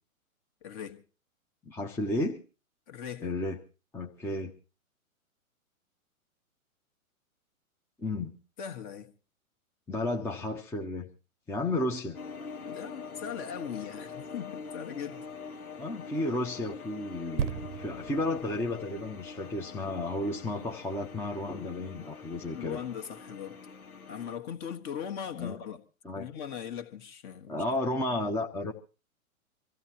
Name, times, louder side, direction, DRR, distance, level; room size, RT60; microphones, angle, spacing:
voice 1, 0.6-1.0 2.9-3.3 8.6-9.1 12.7-15.3 22.5-23.6 24.1-25.8 26.1-28.0, left 8 dB, 35° left, 1.5 m, -39 dB
voice 2, 1.6-2.4 3.2-3.6 3.9-4.5 8.0-8.4 9.9-11.1 11.5-12.2 15.8-22.8 25.4-25.6 26.0-26.3 27.5-28.7, left 2 dB, 5° left, 0.8 m, -33 dB
sound 1, 12.1-24.4, left 5 dB, 85° left, 1.5 m, -44 dB
sound 2, 17.4-21.0 21.6-21.7, right 9 dB, 45° right, 0.8 m, -38 dB
25.5 x 15.0 x 2.9 m
hypercardioid pair, 120°, 43 cm